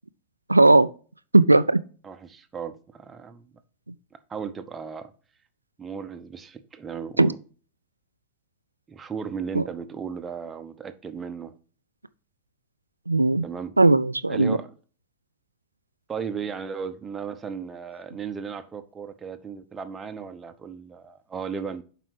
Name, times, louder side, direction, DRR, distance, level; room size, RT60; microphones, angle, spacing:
voice 1, 0.5-0.9 1.3-1.8 7.2-7.3 13.1-13.4 13.8-14.6, right 2 dB, 90° right, 0.3 m, -17 dB
voice 2, 2.0-3.5 4.1-5.1 5.8-7.4 8.9-11.5 13.4-13.8 14.3-14.7 16.1-21.8, right 6 dB, 20° right, 0.9 m, -35 dB
7.5 x 5.0 x 4.8 m
figure-of-eight pair, 95°, 0 cm